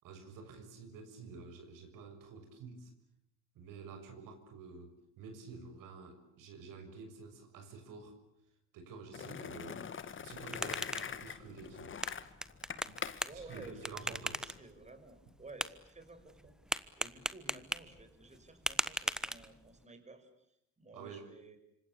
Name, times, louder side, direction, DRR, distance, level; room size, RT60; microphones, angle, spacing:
voice 1, 0.0-2.9 3.5-8.2 8.7-12.0 12.9-14.4 20.9-21.3, right 4 dB, 65° right, 6 dB, 6.7 m, -50 dB
Skateboard, 9.1-14.6, left 7 dB, 35° left, 2.2 m, -44 dB
sound 1, 10.2-19.8, equal, ahead, 1.3 m, -41 dB
voice 2, 13.2-14.2 14.4-20.3 20.8-21.6, right 3 dB, 20° right, 7 dB, 6.0 m, -53 dB
27.0 x 25.5 x 8.5 m, 0.78 s
supercardioid pair, 85°, 35 cm